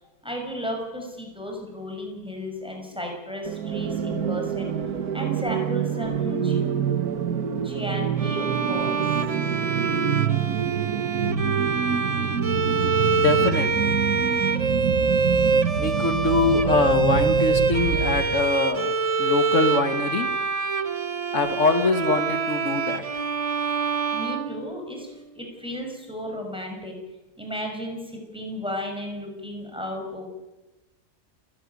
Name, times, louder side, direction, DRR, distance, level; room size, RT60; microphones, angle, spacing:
voice 1, 0.2-4.7 5.1-6.7 7.6-9.1 24.1-26.9 27.4-30.3, equal, 5° right, 1 dB, 5.8 m, -34 dB
sound 1, 3.4-18.4, right 7 dB, 70° right, 1.7 m, -27 dB
Bowed string instrument, 8.2-25.2, right 5 dB, 35° right, 0.6 m, -25 dB
voice 2, 13.2-14.0 15.8-20.3 21.3-23.1, left 3 dB, 50° left, 8 dB, 2.0 m, -23 dB
29.0 x 11.5 x 9.6 m, 1.1 s
omnidirectional pair, 1.7 m